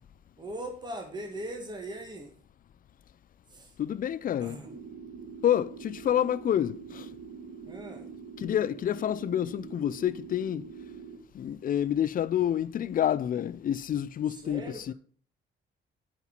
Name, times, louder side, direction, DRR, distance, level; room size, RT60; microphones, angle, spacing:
voice 1, 0.4-2.3 3.5-3.7 4.4-4.8 7.6-8.0 14.3-14.9, right 1 dB, 20° right, 1.5 m, -40 dB
voice 2, 3.8-4.6 5.4-7.1 8.4-10.7 11.3-14.9, left 10 dB, 45° left, 0.4 m, -28 dB
sound 1, 4.6-11.2, right 6 dB, 65° right, 1.5 m, -44 dB
8.0 x 4.6 x 5.7 m
cardioid pair, 90°, 20 cm